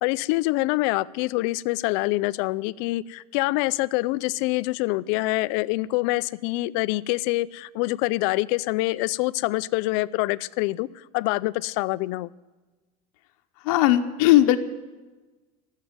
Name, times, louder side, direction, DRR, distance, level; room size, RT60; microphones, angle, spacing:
voice 1, 0.0-12.3, left 20 dB, 55° left, 19 dB, 0.4 m, -25 dB
voice 2, 13.6-14.6, left 14 dB, 75° left, 6 dB, 0.9 m, -18 dB
14.5 x 7.4 x 9.5 m, 1.2 s
cardioid pair, 175°, 18 cm